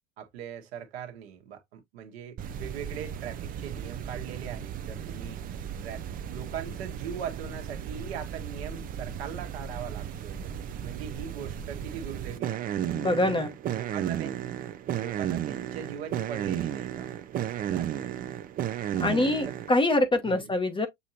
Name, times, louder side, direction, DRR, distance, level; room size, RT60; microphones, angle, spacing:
voice 1, 0.2-5.4 5.8-6.0 6.3-10.5 10.8-12.8 13.2-13.4 13.7-14.5 14.9-18.2 19.4-19.5 20.2-20.6, right 8 dB, 60° right, 1.3 m, -40 dB
sound 1, 2.4-19.8, right 10 dB, 25° right, 0.5 m, -34 dB
voice 2, 12.9-13.5 19.0-20.9, left 2 dB, 15° left, 0.9 m, -25 dB
6.9 x 2.7 x 2.7 m
figure-of-eight pair, 75°, 35 cm